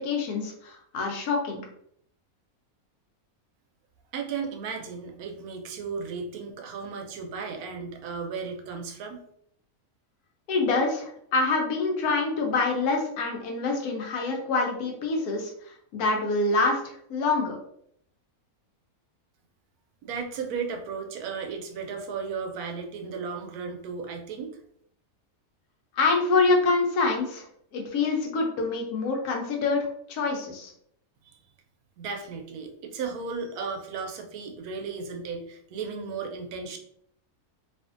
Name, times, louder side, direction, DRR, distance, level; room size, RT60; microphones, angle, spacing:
voice 1, 0.0-1.6 10.5-15.5 15.9-17.6 26.0-27.5 27.7-30.7, left 3 dB, 90° left, 1 dB, 1.2 m, -26 dB
voice 2, 4.1-9.2 20.0-24.6 31.2-31.4 32.0-36.8, right 5 dB, 85° right, 3 dB, 1.1 m, -35 dB
2.7 x 2.5 x 2.4 m, 0.69 s
omnidirectional pair, 1.5 m